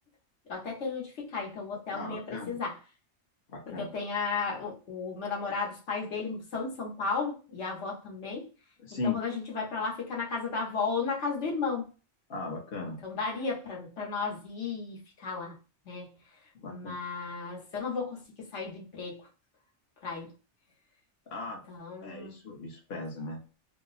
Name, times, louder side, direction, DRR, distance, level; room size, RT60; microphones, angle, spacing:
voice 1, 0.5-2.8 3.8-8.5 9.0-11.9 13.0-15.6 15.9-16.1 16.7-19.3 20.0-20.3 21.7-22.3, left 4 dB, 75° left, 1.2 m, -34 dB
voice 2, 1.9-2.6 3.5-3.9 8.8-9.2 12.3-13.0 16.5-17.0 21.3-21.6 22.0-23.4, left 3 dB, 60° left, 1.0 m, -37 dB
2.8 x 2.0 x 3.9 m
omnidirectional pair, 1.2 m